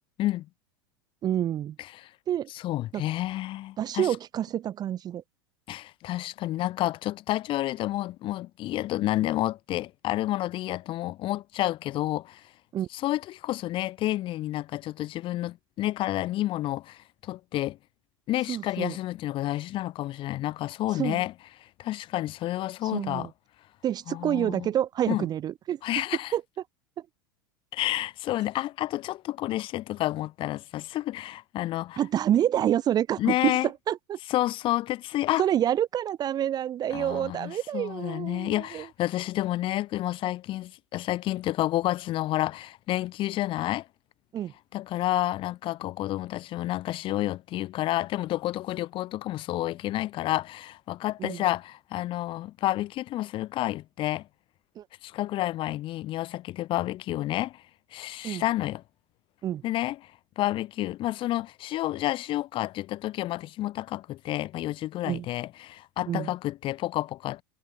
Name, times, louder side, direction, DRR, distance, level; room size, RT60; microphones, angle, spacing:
voice 1, 1.2-1.8 2.3-2.5 2.9-3.0 3.8-5.2 12.7-12.9 18.5-19.0 21.0-21.2 22.8-23.3 23.8-26.0 26.3-26.4 32.0-34.2 35.4-38.9 44.3-44.5 51.2-51.4 54.8-54.9 58.2-58.4 59.4-59.6 65.0-65.3 66.1-66.3, right 11 dB, 35° right, 0.8 m, -28 dB
voice 2, 1.8-2.1 2.5-4.2 5.7-12.5 12.9-17.8 18.3-21.3 21.6-23.3 24.1-24.7 25.1-25.2 25.8-26.3 27.7-32.0 33.2-33.7 34.3-35.4 36.9-43.9 44.7-54.3 55.0-57.6 57.9-58.8 59.6-67.4, left 15 dB, 45° left, 3.5 m, -30 dB
hypercardioid pair, 90°, 12 cm